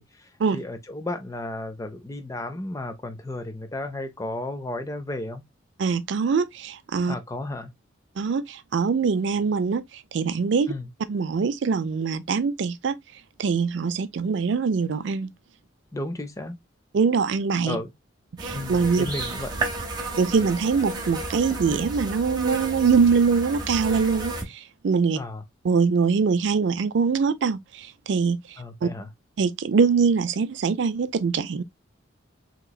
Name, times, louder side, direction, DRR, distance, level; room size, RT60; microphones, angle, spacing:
voice 1, 0.0-5.4 7.1-7.7 10.7-10.9 15.9-16.6 17.7-17.9 18.5-19.5 25.1-25.4 28.6-29.1, left 2 dB, 15° left, 0.4 m, -33 dB
voice 2, 5.8-7.2 8.2-10.7 11.1-13.0 13.4-15.3 16.9-17.8 18.4-19.1 20.2-25.2 25.6-28.9 29.4-31.6, right 5 dB, 65° right, 0.4 m, -23 dB
sound 1, 18.4-24.4, right 2 dB, 20° right, 0.7 m, -32 dB
3.8 x 2.9 x 2.2 m
head